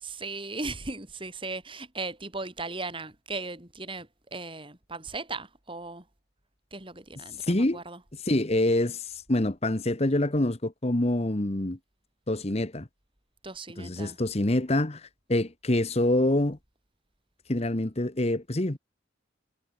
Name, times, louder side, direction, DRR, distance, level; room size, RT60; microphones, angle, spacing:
voice 1, 0.0-6.0 6.7-8.0 13.4-14.2, right 3 dB, 25° right, 4.3 m, -37 dB
voice 2, 7.4-7.8 8.2-11.8 12.3-12.9 13.8-16.6 17.5-18.8, left 1 dB, 30° left, 1.2 m, -26 dB
head